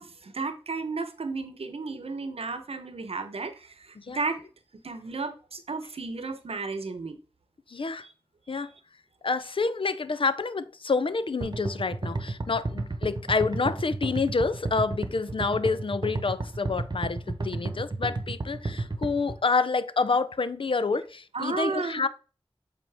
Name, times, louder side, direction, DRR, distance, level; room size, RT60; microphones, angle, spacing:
voice 1, 0.0-4.4 4.8-7.2 8.5-8.7 21.3-22.1, right 4 dB, 85° right, 0.8 m, -33 dB
voice 2, 7.7-8.1 8.5-8.7 9.2-22.1, left 4 dB, 65° left, 0.5 m, -28 dB
sound 1, 11.4-19.4, right 2 dB, 50° right, 0.9 m, -32 dB
8.0 x 4.2 x 3.4 m
wide cardioid pair, 60°, 10 cm